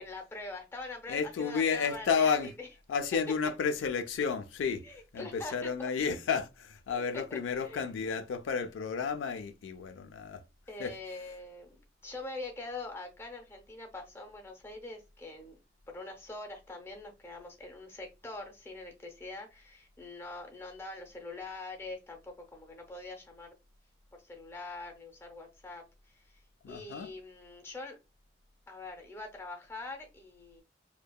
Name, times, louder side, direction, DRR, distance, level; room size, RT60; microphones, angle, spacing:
voice 1, 0.0-2.7 3.3-3.4 4.8-5.9 6.9-7.9 10.7-15.6 15.9-23.5 24.1-28.0 28.7-30.6, left 2 dB, 15° left, 0.5 m, -44 dB
voice 2, 1.1-2.5 2.9-4.8 5.1-10.4 10.8-10.9 26.6-27.1, left 6 dB, 85° left, 0.3 m, -31 dB
2.7 x 2.1 x 2.2 m
head